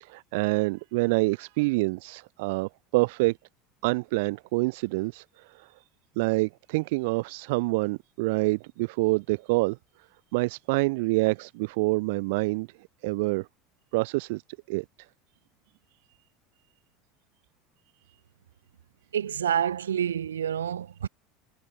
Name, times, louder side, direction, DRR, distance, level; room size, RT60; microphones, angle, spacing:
voice 1, 0.0-3.4 3.8-5.7 6.2-9.8 10.3-12.7 13.0-13.5 13.9-14.4 14.7-14.8, right 25 dB, 65° right, 1.5 m, -26 dB
voice 2, 19.1-21.1, right 9 dB, 80° right, 3.1 m, -28 dB
figure-of-eight pair, 70°, 0 cm